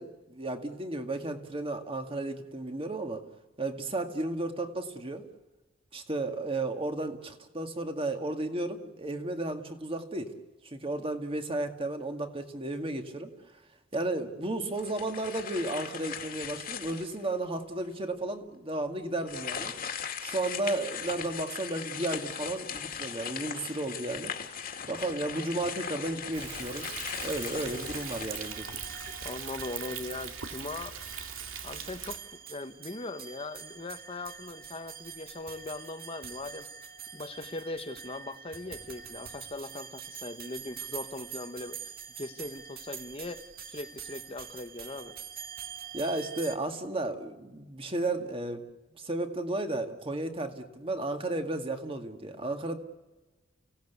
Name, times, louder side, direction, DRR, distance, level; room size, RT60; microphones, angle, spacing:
voice 1, 0.0-3.2 3.6-5.2 5.9-10.3 10.6-13.3 13.9-19.7 20.2-24.3 24.9-26.9 27.2-28.7 45.9-48.6 49.0-52.8, right 2 dB, 30° right, 6 dB, 2.0 m, -33 dB
sound 1, 14.7-17.3 17.8-17.9 19.2-29.0, left 7 dB, 45° left, 2.2 m, -39 dB
Thunder, 26.3-32.2, right 7 dB, 90° right, 2.2 m, -40 dB
sound 2, 27.1-46.6, right 7 dB, 50° right, 1.7 m, -45 dB
voice 2, 29.2-31.0 31.6-32.2 32.5-36.7 37.1-43.4 43.7-45.1, left 2 dB, 30° left, 10 dB, 1.1 m, -40 dB
30.0 x 17.0 x 8.3 m, 1.1 s
head